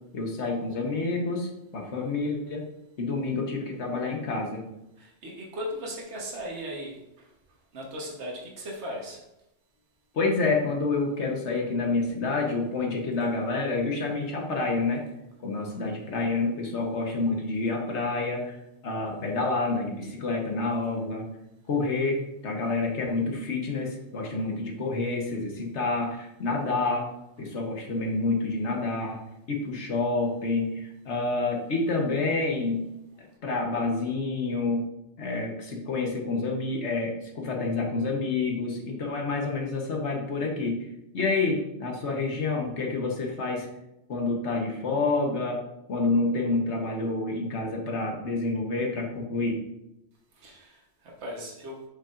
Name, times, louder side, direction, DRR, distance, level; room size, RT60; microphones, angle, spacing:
voice 1, 0.1-2.6 3.0-4.7 10.1-15.0 15.4-18.6 18.8-21.3 21.7-27.1 27.4-29.2 29.5-32.8 33.4-34.9 35.2-40.9 41.1-43.7 44.1-45.6 45.9-49.6, left 3 dB, 70° left, 1 dB, 1.4 m, -28 dB
voice 2, 5.0-7.0 7.7-9.2 15.6-15.8 50.4-51.8, equal, 70° right, -1 dB, 1.5 m, -37 dB
7.6 x 5.7 x 2.5 m, 0.86 s
omnidirectional pair, 1.2 m